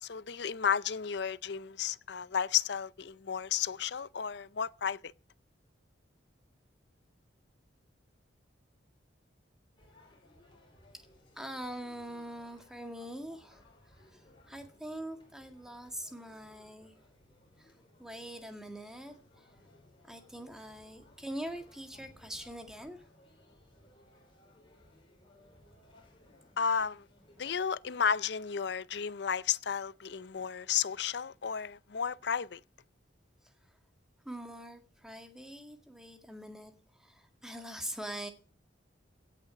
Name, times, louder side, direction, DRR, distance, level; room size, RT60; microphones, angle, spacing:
voice 1, 0.0-5.1 26.6-27.1 27.4-32.6, left 7 dB, 60° left, 0.5 m, -33 dB
sound 1, 9.8-27.6, left 1 dB, 25° left, 4.7 m, -62 dB
voice 2, 11.3-16.9 17.6-19.5 20.0-23.0 27.4-27.5 34.2-38.3, right 1 dB, 5° right, 1.8 m, -44 dB
16.5 x 6.7 x 7.0 m
head